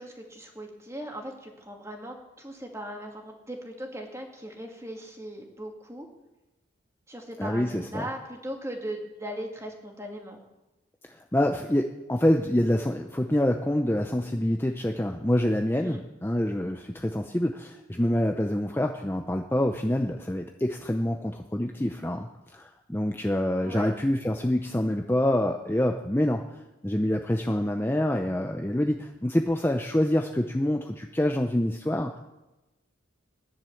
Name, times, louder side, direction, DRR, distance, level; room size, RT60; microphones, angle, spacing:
voice 1, 0.0-6.1 7.1-10.4 15.8-16.0 23.5-23.9, right 1 dB, 15° right, 2 dB, 2.1 m, -39 dB
voice 2, 7.4-8.1 11.0-22.3 22.5-26.4 26.8-32.2, left 1 dB, 10° left, 4 dB, 0.6 m, -26 dB
17.0 x 10.5 x 7.1 m, 1.0 s
head